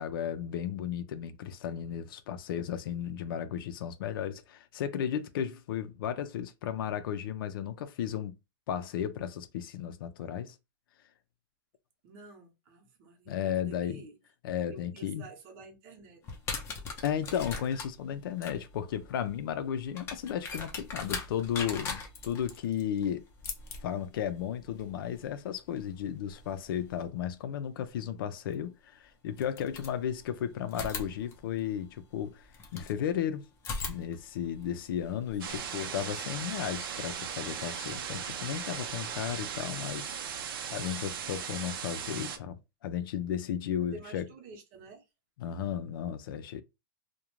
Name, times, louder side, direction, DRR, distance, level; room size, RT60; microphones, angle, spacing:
voice 1, 0.0-8.4 8.7-10.5 13.3-14.0 14.4-15.3 17.0-23.2 23.8-33.5 33.9-40.1 40.7-44.2 45.4-46.6, left 9 dB, 80° left, 0.4 m, -34 dB
voice 2, 12.0-14.1 14.7-16.2 18.1-18.2 35.5-35.6 43.9-45.0, right 3 dB, 50° right, 0.9 m, -50 dB
sound 1, 16.2-27.0 28.5-28.6 29.3-30.3 30.7-33.0 33.6-35.6, left 4 dB, 20° left, 0.6 m, -41 dB
sound 2, 35.4-42.4, right 7 dB, 85° right, 0.5 m, -38 dB
2.4 x 2.2 x 3.0 m
supercardioid pair, 150°, 12 cm